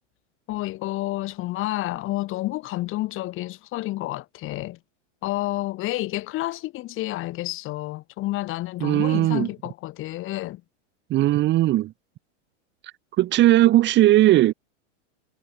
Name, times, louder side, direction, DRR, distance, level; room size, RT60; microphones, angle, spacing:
voice 1, 0.5-4.8 5.2-10.6, left 17 dB, 35° left, 7.0 m, -30 dB
voice 2, 8.8-9.5 11.1-11.9 13.2-14.5, right 15 dB, 30° right, 3.6 m, -18 dB
supercardioid pair, 150°, 37 cm